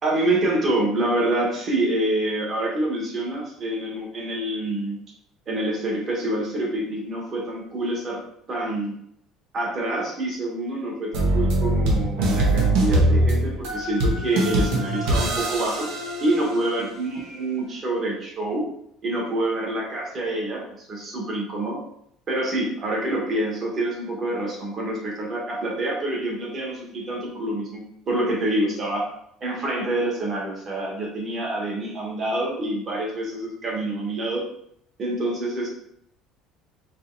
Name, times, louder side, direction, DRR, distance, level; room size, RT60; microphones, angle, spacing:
voice 1, 0.0-5.0 5.5-8.2 8.5-8.9 9.5-15.9 16.2-18.7 19.0-21.8 22.3-29.0 29.4-34.4 35.0-35.7, right 1 dB, 30° right, -2 dB, 1.2 m, -26 dB
sound 1, 11.1-16.9, right 1 dB, 75° right, 1.0 m, -22 dB
4.8 x 2.9 x 2.6 m, 0.72 s
cardioid pair, 165°, 0 cm